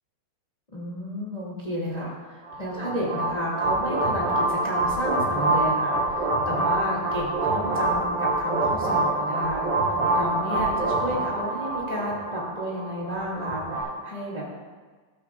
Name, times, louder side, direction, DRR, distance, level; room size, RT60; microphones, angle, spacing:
voice 1, 0.7-14.5, equal, 20° left, -4 dB, 0.9 m, -32 dB
sound 1, 2.4-13.8, right 2 dB, 55° right, 4.5 m, -26 dB
14.5 x 14.5 x 2.5 m, 1.4 s
omnidirectional pair, 5.2 m